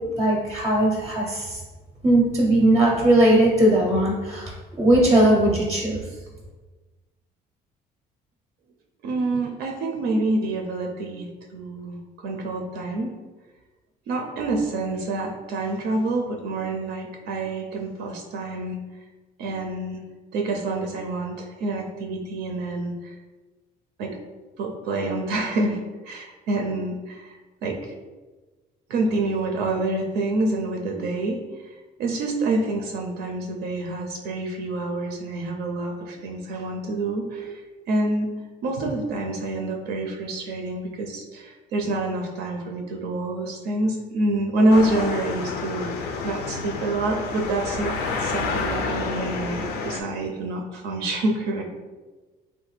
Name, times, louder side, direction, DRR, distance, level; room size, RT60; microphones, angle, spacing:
voice 1, 0.2-1.6 2.0-4.5 4.8-6.0, right 1 dB, 20° right, -2 dB, 0.5 m, -19 dB
voice 2, 9.0-13.2 14.1-18.8 19.4-20.0 20.3-23.1 24.0-24.2 24.6-27.9 28.9-31.7 32.0-38.3 38.6-51.6, right 2 dB, 80° right, 2 dB, 0.4 m, -27 dB
sound 1, 44.7-50.0, left 4 dB, 70° left, 0.4 m, -29 dB
3.2 x 2.2 x 3.1 m, 1.3 s
cardioid pair, 110°, 17 cm